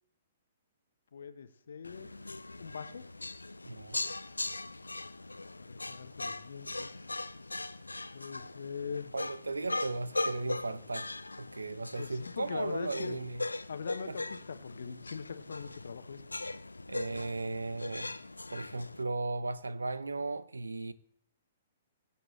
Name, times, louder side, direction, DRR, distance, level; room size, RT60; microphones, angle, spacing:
voice 1, 1.1-2.1 2.6-3.1 5.6-6.9 8.1-9.1 12.0-13.2 13.7-16.2, left 6 dB, 60° left, 1.1 m, -41 dB
sound 1, 1.8-19.0, left 2 dB, 80° left, 0.5 m, -40 dB
voice 2, 3.7-4.0 9.1-11.1 11.4-13.4 14.1-14.2 16.9-18.1 18.5-20.9, right 3 dB, 75° right, 0.8 m, -36 dB
22.5 x 8.4 x 3.2 m
figure-of-eight pair, 115°, 0 cm